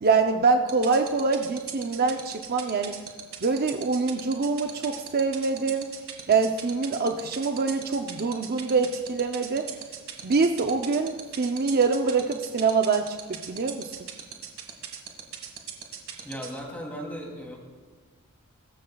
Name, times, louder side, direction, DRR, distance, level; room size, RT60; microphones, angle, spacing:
voice 1, 0.0-2.9 3.4-5.9 6.3-9.7 10.2-13.9, right 4 dB, 45° right, 5 dB, 0.6 m, -25 dB
sound 1, 0.7-16.6, right 9 dB, 65° right, 1.8 m, -37 dB
voice 2, 16.2-17.6, equal, 10° left, -1 dB, 2.8 m, -36 dB
23.5 x 13.0 x 2.3 m, 1.5 s
head